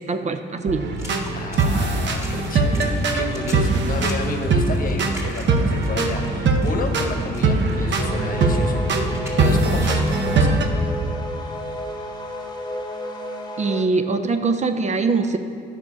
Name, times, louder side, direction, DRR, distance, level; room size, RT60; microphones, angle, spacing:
voice 1, 0.1-1.0 13.6-15.4, right 4 dB, 35° right, 8 dB, 0.5 m, -22 dB
sound 1, 0.7-10.7, right 3 dB, 65° right, 0.8 m, -21 dB
Water / Splash splatter, 0.9-10.2, left 1 dB, 15° right, 2.1 m, -42 dB
voice 2, 1.3-10.6, left 3 dB, 45° left, 5 dB, 1.0 m, -32 dB
sound 2, 8.0-13.8, left 1 dB, 20° left, 0.9 m, -31 dB
9.6 x 5.6 x 4.7 m, 2.4 s
cardioid pair, 90°, 20 cm